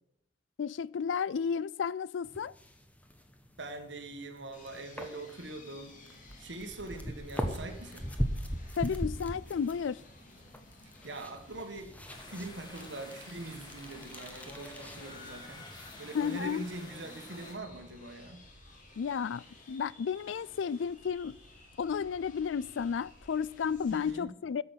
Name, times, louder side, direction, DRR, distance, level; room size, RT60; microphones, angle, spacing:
voice 1, 0.6-2.5 8.8-10.0 16.1-16.6 19.0-21.4 21.8-24.6, left 6 dB, 85° left, 0.4 m, -32 dB
sound 1, 2.2-17.6, equal, 10° left, 1.1 m, -41 dB
voice 2, 3.6-5.9 6.4-8.1 11.0-18.5 23.9-24.3, right 2 dB, 75° right, 1.6 m, -43 dB
sound 2, 4.5-24.1, left 2 dB, 45° left, 2.5 m, -56 dB
sound 3, 12.0-17.5, left 2 dB, 25° left, 2.2 m, -49 dB
13.0 x 6.2 x 7.4 m
head